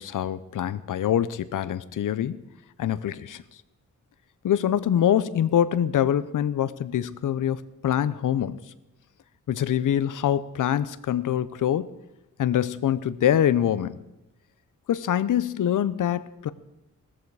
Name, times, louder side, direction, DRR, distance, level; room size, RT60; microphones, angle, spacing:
voice 1, 0.0-2.4 2.8-3.4 4.4-8.7 9.5-11.9 12.4-14.0 14.9-16.5, left 10 dB, 80° left, 16 dB, 0.7 m, -24 dB
17.5 x 14.0 x 4.8 m, 0.94 s
wide cardioid pair, 130°, 31 cm